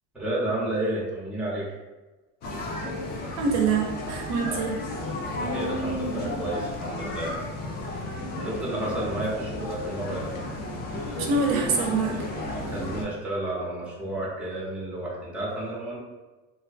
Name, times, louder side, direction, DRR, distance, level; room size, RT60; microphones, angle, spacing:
voice 1, 0.1-1.7 4.4-4.7 5.4-7.3 8.4-10.4 12.6-16.0, right 1 dB, 5° right, -5 dB, 0.6 m, -31 dB
sound 1, 2.4-13.0, left 1 dB, 30° left, 0.3 m, -33 dB
voice 2, 3.4-4.8 11.3-12.2, right 4 dB, 60° right, 1 dB, 0.5 m, -25 dB
2.5 x 2.1 x 2.4 m, 1.2 s
supercardioid pair, 125°, 35 cm